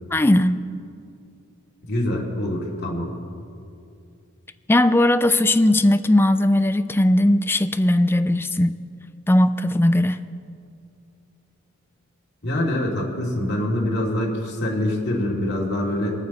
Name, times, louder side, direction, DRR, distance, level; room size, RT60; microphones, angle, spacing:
voice 1, 0.1-0.6 4.7-8.8 9.3-10.2, left 1 dB, 10° left, 11 dB, 0.4 m, -18 dB
voice 2, 1.8-3.1 12.4-16.1, left 1 dB, 50° left, -3 dB, 2.6 m, -25 dB
23.5 x 9.0 x 4.2 m, 2.5 s
head